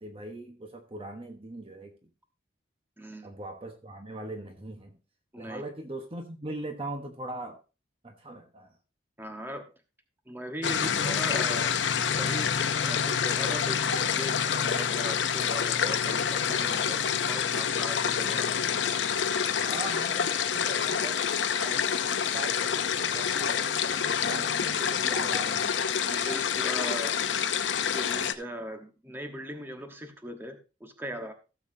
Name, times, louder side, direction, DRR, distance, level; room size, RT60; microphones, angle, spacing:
voice 1, 0.0-2.1 3.2-5.0 5.4-7.6 8.0-8.7 19.6-21.3 21.6-25.8, right 2 dB, 30° right, 1.1 m, -40 dB
voice 2, 3.0-3.3 5.3-5.6 9.2-9.6 10.3-11.7 12.2-17.0 17.3-18.5 26.0-27.1 27.9-31.3, right 1 dB, 10° right, 1.2 m, -39 dB
sound 1, 10.6-28.3, left 7 dB, 80° left, 0.7 m, -27 dB
16.0 x 7.2 x 2.7 m
head